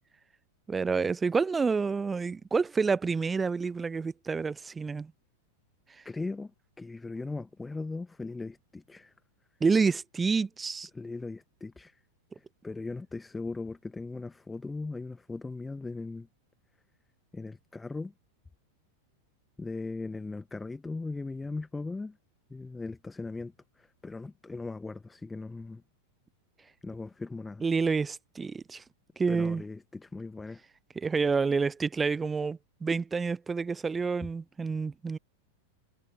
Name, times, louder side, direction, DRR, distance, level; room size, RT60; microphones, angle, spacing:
voice 1, 0.7-5.1 9.6-10.9 27.6-28.8 29.2-29.6 31.0-35.2, right 5 dB, 15° right, 0.3 m, -28 dB
voice 2, 6.0-9.1 10.9-12.0 12.4-16.3 17.3-18.1 19.6-22.2 22.5-25.8 26.6-27.6 29.3-30.6, left 3 dB, 10° left, 1.5 m, -39 dB
figure-of-eight pair, 90°, 0 cm